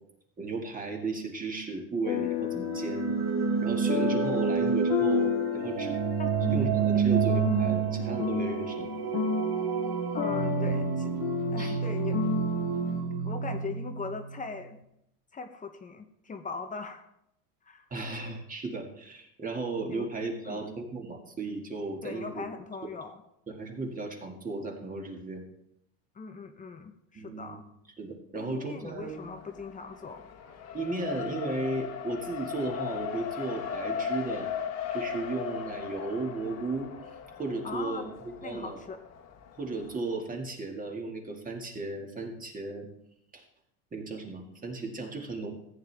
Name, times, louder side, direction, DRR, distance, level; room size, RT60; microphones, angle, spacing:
voice 1, 0.4-3.1 3.6-6.0 6.5-8.9 11.6-11.8 17.9-22.3 23.5-25.5 27.1-27.6 28.0-29.2 30.7-34.5 34.9-36.9 37.4-38.8 39.6-42.9 43.3-43.4 43.9-45.5, right 3 dB, 20° right, 2 dB, 2.0 m, -35 dB
sound 1, 2.0-13.0, left 8 dB, 60° left, 1.5 m, -33 dB
sound 2, 2.6-14.5, right 7 dB, 60° right, 1.2 m, -29 dB
voice 2, 10.1-11.1 11.5-12.2 13.2-14.8 15.3-17.0 17.7-17.9 19.9-20.1 20.4-20.6 22.0-23.2 26.1-27.6 28.3-30.3 37.6-38.1 38.4-39.0, left 4 dB, 20° left, 6 dB, 0.8 m, -40 dB
Race car auto racing, 29.0-40.0, left 7 dB, 40° left, 1.3 m, -38 dB
14.5 x 9.3 x 3.4 m, 0.78 s
cardioid pair, 140°, 38 cm